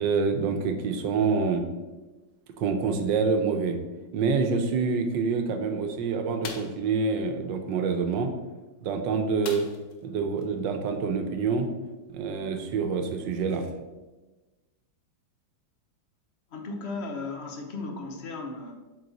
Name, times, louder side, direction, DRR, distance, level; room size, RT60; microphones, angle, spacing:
voice 1, 0.0-1.6 2.6-3.8 4.1-8.3 8.8-9.7 10.0-11.7 12.1-13.7, right 5 dB, 75° right, 5 dB, 1.4 m, -26 dB
sound 1, 6.4-6.8 9.4-10.0 10.4-10.5 10.9-11.1, left 5 dB, 70° left, 1.4 m, -39 dB
voice 2, 16.5-18.7, left 3 dB, 50° left, 3 dB, 0.9 m, -35 dB
7.8 x 4.2 x 4.0 m, 1.2 s
omnidirectional pair, 2.0 m